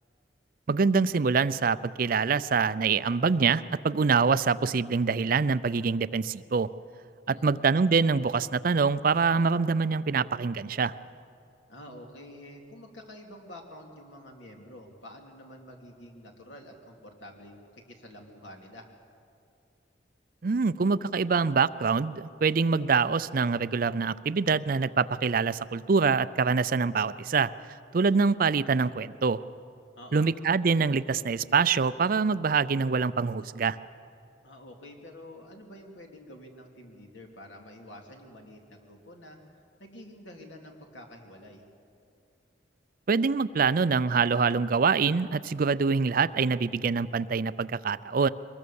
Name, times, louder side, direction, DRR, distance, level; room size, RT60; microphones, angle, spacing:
voice 1, 0.7-6.7 7.3-10.9 20.4-27.5 27.9-29.4 30.1-33.8 43.1-48.3, right 5 dB, 50° right, 16 dB, 0.4 m, -25 dB
voice 2, 7.3-7.6 11.7-18.9 30.0-30.3 34.4-41.6, left 1 dB, 80° left, 2 dB, 2.9 m, -48 dB
23.5 x 20.5 x 7.1 m, 2.5 s
head